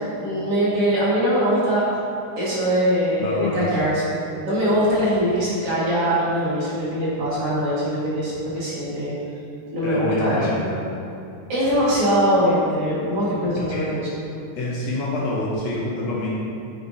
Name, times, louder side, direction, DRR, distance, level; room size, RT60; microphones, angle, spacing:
voice 1, 0.0-1.8 2.4-4.2 4.4-9.2 9.7-10.4 11.5-14.1, equal, 50° right, -8 dB, 2.7 m, -22 dB
voice 2, 3.2-3.8 9.8-10.8 13.6-13.9 14.5-16.3, left 2 dB, 65° left, -5 dB, 2.0 m, -26 dB
9.2 x 8.4 x 2.7 m, 2.9 s
omnidirectional pair, 3.6 m